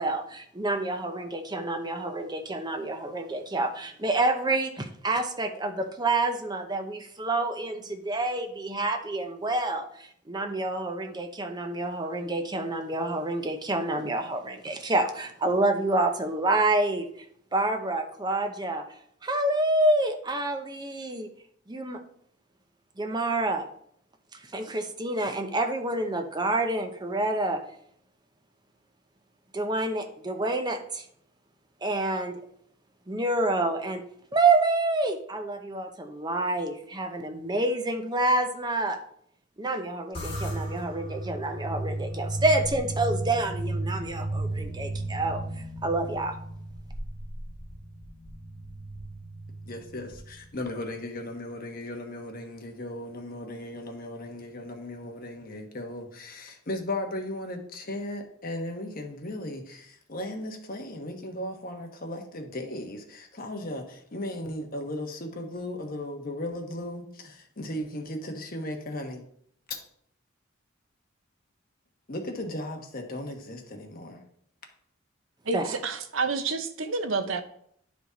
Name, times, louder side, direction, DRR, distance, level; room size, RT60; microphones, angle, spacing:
voice 1, 0.0-17.1 17.5-18.8 19.2-21.3 21.7-22.0 23.0-23.7 24.5-27.6 29.5-31.1 31.8-32.4 33.1-34.0 34.3-39.0 39.6-45.4 45.8-46.4 75.5-75.6, right 2 dB, 20° right, 0.7 m, -28 dB
sound 1, 40.1-50.7, right 1 dB, 30° left, 2.8 m, -35 dB
voice 2, 49.7-69.2 69.7-69.8 72.1-74.2, left 1 dB, 45° left, 1.2 m, -36 dB
voice 3, 75.5-77.4, right 4 dB, 70° right, 0.8 m, -29 dB
10.5 x 4.9 x 4.0 m
head